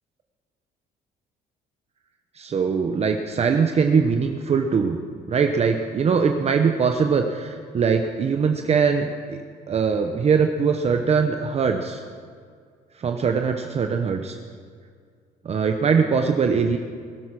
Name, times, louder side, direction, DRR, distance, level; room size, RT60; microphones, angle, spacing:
voice 1, 2.4-5.0 5.3-12.0 13.0-14.4 15.4-16.8, right 5 dB, 40° right, 5 dB, 0.9 m, -22 dB
21.0 x 8.1 x 6.0 m, 2.1 s
cardioid pair, 110°, 17 cm